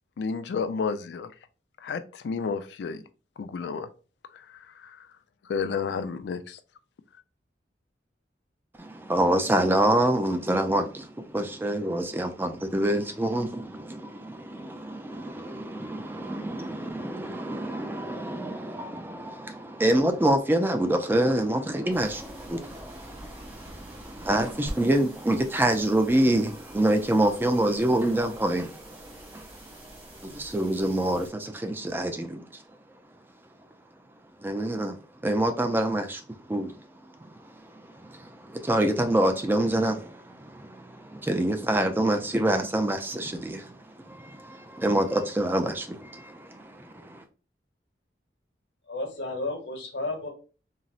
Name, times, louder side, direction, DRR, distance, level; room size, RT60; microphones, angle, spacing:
voice 1, 0.2-1.3 1.8-3.0 3.4-3.9 4.3-5.1 5.4-6.6, left 5 dB, 70° left, 0.3 m, -31 dB
voice 2, 8.8-32.6 34.4-36.9 37.2-47.2, right 1 dB, 10° right, 0.3 m, -27 dB
sound 1, 21.9-31.3, right 1 dB, 30° right, 1.3 m, -45 dB
voice 3, 48.9-50.3, left 2 dB, 90° left, 0.9 m, -32 dB
3.9 x 2.0 x 2.4 m
head